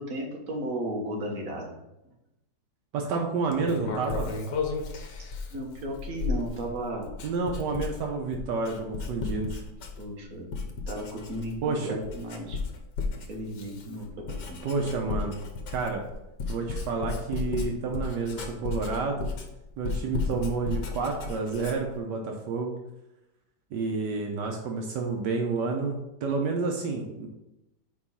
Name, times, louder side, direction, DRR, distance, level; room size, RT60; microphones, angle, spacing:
voice 1, 0.0-1.7 5.5-7.1 10.0-10.5 10.9-12.6 13.2-14.6, right 1 dB, 50° right, 0 dB, 1.7 m, -34 dB
voice 2, 2.9-4.3 7.2-9.6 11.6-11.9 14.6-15.3 15.7-16.0 16.5-19.3 19.8-22.7 23.7-26.0 26.2-27.3, right 4 dB, 80° right, 1 dB, 1.4 m, -29 dB
Writing, 3.5-10.2 10.5-11.7 12.0-22.0, left 4 dB, 80° left, 1.6 m, -34 dB
5.1 x 4.7 x 5.6 m, 0.92 s
omnidirectional pair, 1.8 m